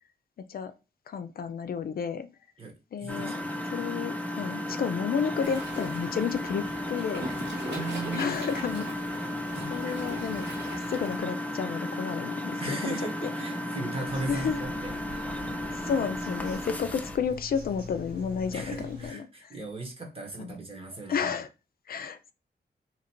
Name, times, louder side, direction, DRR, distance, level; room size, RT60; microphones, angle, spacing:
voice 1, 1.1-2.3 2.9-3.4 3.7-7.3 8.1-8.9 9.7-10.5 10.9-12.9 13.2-13.3 14.3-14.6 15.7-19.6 20.4-20.5 21.1-21.5 21.9-22.3, left 7 dB, 60° left, 10 dB, 0.4 m, -31 dB
voice 2, 3.0-3.5 7.6-8.3 9.5-9.7 12.6-14.9 18.5-21.3, right 2 dB, 35° right, 3 dB, 1.2 m, -37 dB
Engine, 3.1-17.2, left 1 dB, 10° left, 0.6 m, -34 dB
Waves surf, 5.4-11.2, right 1 dB, 80° right, 1.3 m, -41 dB
Bird vocalization bird call bird song, 14.1-19.1, left 2 dB, 60° right, 1.8 m, -44 dB
2.9 x 2.5 x 4.3 m, 0.29 s
wide cardioid pair, 95°, 17 cm